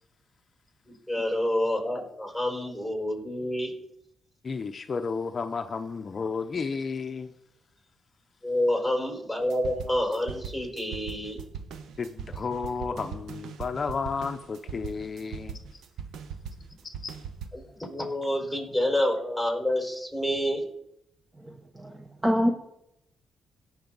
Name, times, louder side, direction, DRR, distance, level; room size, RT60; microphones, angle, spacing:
voice 1, 0.8-3.7 8.4-11.4 17.5-20.7, left 1 dB, 5° right, 4.9 m, -28 dB
voice 2, 4.4-7.3 12.0-15.6 17.0-17.1, left 5 dB, 45° left, 0.6 m, -32 dB
sound 1, 9.4-17.5, right 7 dB, 85° right, 0.8 m, -40 dB
voice 3, 21.4-22.5, equal, 20° right, 1.1 m, -27 dB
18.0 x 6.2 x 3.9 m
cardioid pair, 85°, 0 cm